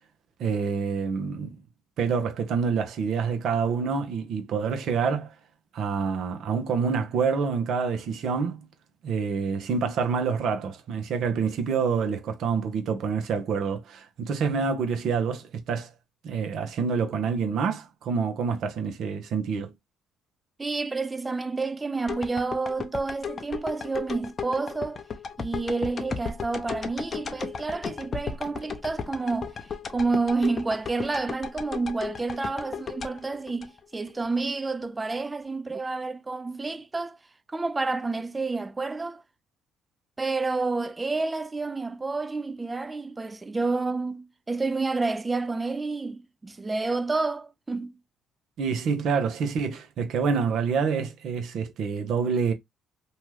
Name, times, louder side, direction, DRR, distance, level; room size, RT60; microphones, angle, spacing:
voice 1, 0.4-1.6 2.0-5.3 5.7-8.7 9.0-15.9 16.2-19.7 48.6-52.5, right 5 dB, 65° right, 0.7 m, -27 dB
voice 2, 20.6-25.0 25.4-29.5 29.9-37.2 37.5-39.2 40.2-48.0, right 3 dB, 25° right, 0.4 m, -29 dB
sound 1, 22.1-34.3 34.7-34.8, left 5 dB, 45° left, 0.5 m, -35 dB
2.8 x 2.3 x 3.1 m
supercardioid pair, 65°, 0 cm